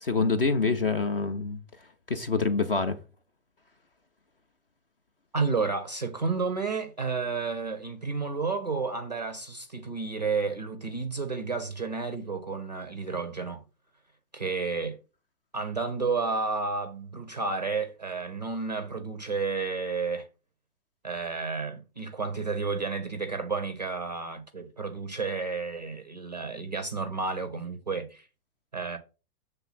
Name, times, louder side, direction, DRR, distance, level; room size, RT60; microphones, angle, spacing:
voice 1, 0.0-1.6 2.1-3.0, left 4 dB, 40° left, 0.4 m, -26 dB
voice 2, 5.3-13.6 14.3-15.0 15.5-20.3 21.0-28.3 28.7-29.0, right 4 dB, 30° right, 0.4 m, -31 dB
7.2 x 3.3 x 5.7 m
hypercardioid pair, 165°, 48 cm